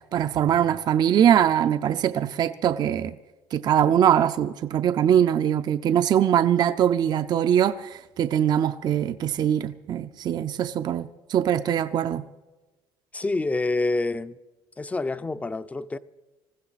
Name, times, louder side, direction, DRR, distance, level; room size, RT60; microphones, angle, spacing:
voice 1, 0.1-3.2 3.5-12.2, right 9 dB, 45° right, 0.5 m, -22 dB
voice 2, 13.1-14.4 14.8-16.0, left 2 dB, 15° left, 0.5 m, -27 dB
20.0 x 15.0 x 4.0 m
cardioid pair, 115°, 10 cm